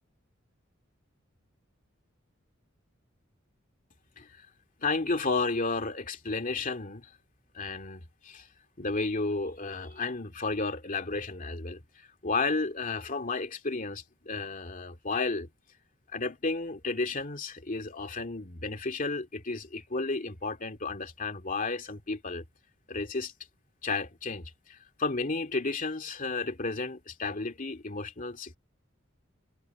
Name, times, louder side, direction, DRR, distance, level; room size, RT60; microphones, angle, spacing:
voice 1, 4.8-7.1 7.5-8.5 8.8-15.5 16.1-22.4 22.9-23.3 23.8-28.6, left 3 dB, 40° left, 2.5 m, -32 dB
head